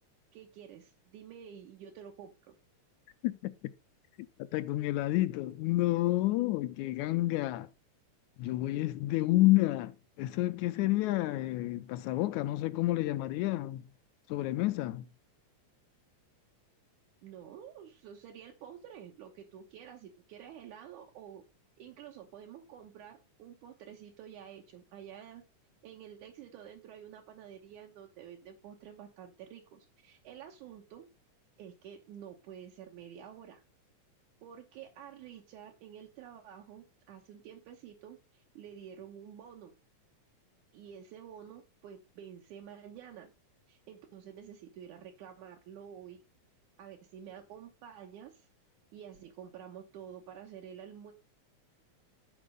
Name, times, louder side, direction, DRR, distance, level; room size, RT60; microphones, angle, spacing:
voice 1, 0.3-2.6 17.2-21.4 21.8-25.4 25.8-31.1 31.6-33.6 34.4-39.7 40.7-43.3 43.7-46.2 46.8-48.5 48.9-51.1, right 9 dB, 80° right, 2.5 m, -49 dB
voice 2, 3.2-3.5 4.5-7.7 8.4-13.9 14.3-15.1, left 17 dB, 80° left, 1.9 m, -29 dB
11.0 x 4.2 x 5.0 m
omnidirectional pair, 3.5 m